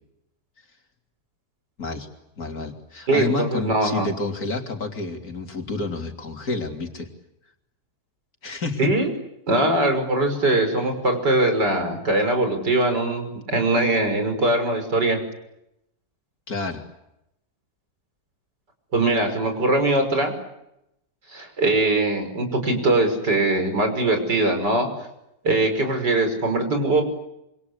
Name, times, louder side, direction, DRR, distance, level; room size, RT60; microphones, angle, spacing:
voice 1, 2.4-7.1 8.4-8.9 16.5-16.8, left 3 dB, 60° left, 4 dB, 3.7 m, -29 dB
voice 2, 3.1-4.1 8.8-9.1 9.5-15.2 18.9-20.3 21.3-24.9 25.4-27.0, right 2 dB, 85° right, 6 dB, 6.3 m, -21 dB
27.0 x 26.0 x 8.3 m, 0.84 s
omnidirectional pair, 1.8 m